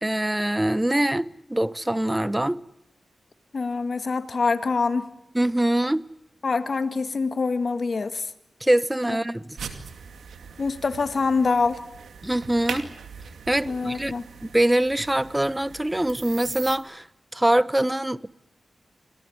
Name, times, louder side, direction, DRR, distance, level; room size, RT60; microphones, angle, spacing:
voice 1, 0.0-2.6 5.3-6.0 8.6-9.4 12.2-12.9 13.5-14.1 14.4-17.0 17.3-18.3, right 1 dB, 15° right, 1.2 m, -23 dB
voice 2, 3.5-5.1 6.4-8.3 9.1-9.2 10.6-11.8 13.6-14.2, left 4 dB, 60° left, 2.0 m, -25 dB
sound 1, 9.6-16.8, right 6 dB, 90° right, 2.4 m, -40 dB
26.0 x 18.0 x 9.9 m
cardioid pair, 40°, 0 cm